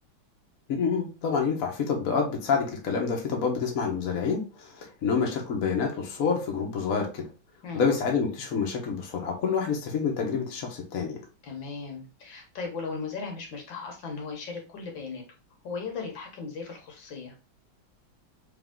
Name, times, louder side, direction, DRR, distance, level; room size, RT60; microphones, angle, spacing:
voice 1, 0.7-7.3 7.7-11.2, left 5 dB, 55° left, 1 dB, 1.2 m, -28 dB
voice 2, 11.4-15.2 15.6-17.3, left 4 dB, 75° left, 2 dB, 1.8 m, -37 dB
3.5 x 3.0 x 3.6 m, 0.33 s
omnidirectional pair, 2.1 m